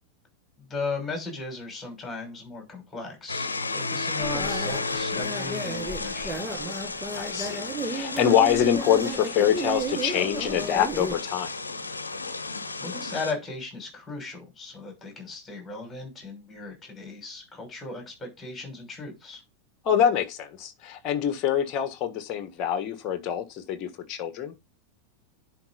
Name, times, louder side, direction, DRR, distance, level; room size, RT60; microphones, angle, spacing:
voice 1, 0.6-6.5 12.8-19.4, left 3 dB, 15° left, 6.1 m, -37 dB
sound 1, 3.3-13.3, left 3 dB, 75° left, 0.9 m, -33 dB
sound 2, 4.2-11.2, right 2 dB, 5° right, 1.1 m, -34 dB
voice 2, 7.2-11.5 19.8-24.5, left 9 dB, 35° left, 1.4 m, -25 dB
10.5 x 4.9 x 4.0 m
figure-of-eight pair, 90°, 0 cm